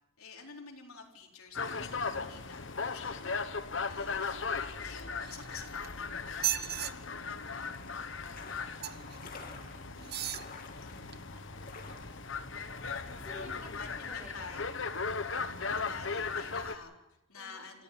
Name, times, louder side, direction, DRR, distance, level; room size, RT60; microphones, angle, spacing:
voice 1, 0.2-3.4 3.9-7.6 13.3-14.8 15.4-17.8, left 4 dB, 90° left, 0 dB, 4.1 m, -50 dB
sound 1, 1.5-16.7, left 4 dB, 60° left, 1.2 m, -38 dB
sound 2, 1.5-13.9, left 3 dB, 45° left, 2.4 m, -53 dB
voice 2, 2.0-2.4 8.2-10.5 10.7-12.5 12.8-14.4 14.9-15.8 17.3-17.7, equal, 5° right, 1 dB, 5.6 m, -56 dB
sound 3, 5.2-5.9 6.3-6.9 8.8-9.2 10.0-10.5 11.1-11.2, right 12 dB, 45° right, 0.9 m, -35 dB
27.5 x 15.0 x 7.5 m, 0.91 s
head